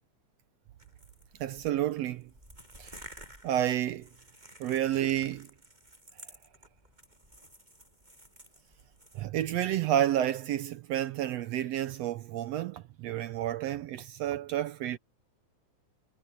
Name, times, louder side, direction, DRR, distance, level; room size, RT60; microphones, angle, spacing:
sound 1, 0.8-9.2, right 1 dB, 15° right, 8.2 m, -53 dB
voice 1, 1.4-2.3 2.8-3.0 3.4-4.1 4.6-5.5 9.1-15.0, right 12 dB, 70° right, 1.6 m, -30 dB
omnidirectional pair, 3.5 m